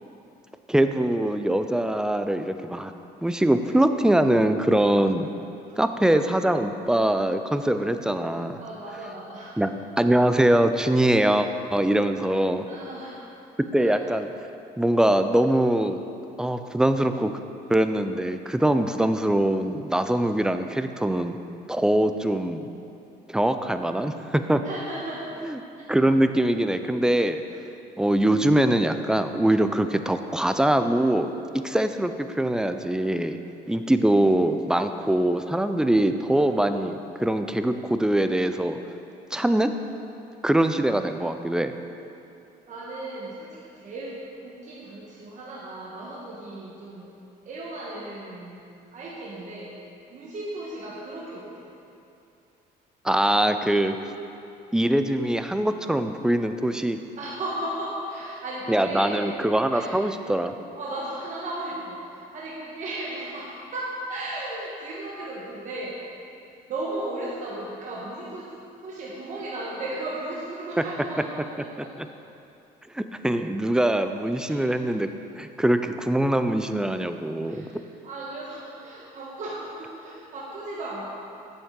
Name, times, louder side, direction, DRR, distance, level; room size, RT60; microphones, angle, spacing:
voice 1, 0.7-2.9 3.2-5.3 5.8-8.6 9.6-12.6 13.7-14.3 14.8-16.0 16.4-17.3 17.7-21.4 21.7-22.7 23.3-24.6 25.4-25.6 25.9-27.4 28.0-33.4 33.7-38.8 39.3-39.7 40.4-41.7 53.0-54.0 54.7-57.0 58.7-60.5 72.0-72.1 72.9-75.1 75.4-77.7, right 1 dB, 5° right, 8 dB, 0.3 m, -23 dB
voice 2, 8.6-9.5 12.7-13.2 13.8-14.0 24.6-25.3 25.8-25.9 42.7-47.1 47.4-48.7 48.9-49.8 50.1-51.7 57.2-59.2 59.7-60.0 60.7-66.0 66.3-66.4 66.7-72.1 74.4-74.6 77.4-81.1, right 1 dB, 45° right, -5 dB, 1.2 m, -35 dB
8.1 x 7.2 x 3.7 m, 2.7 s
cardioid pair, 110°, 17 cm